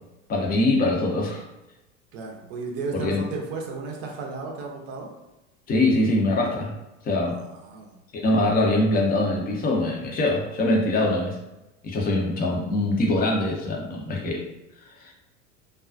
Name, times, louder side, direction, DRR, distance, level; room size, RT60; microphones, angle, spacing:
voice 1, 0.3-1.4 2.9-3.2 5.7-6.7 7.0-7.4 8.1-11.4 11.8-14.4 14.8-15.1, left 2 dB, 25° left, -1 dB, 0.6 m, -23 dB
voice 2, 2.1-5.1 7.3-8.0, right 4 dB, 40° right, 0 dB, 0.6 m, -34 dB
2.3 x 2.2 x 2.4 m, 0.97 s
figure-of-eight pair, 75°, 40 cm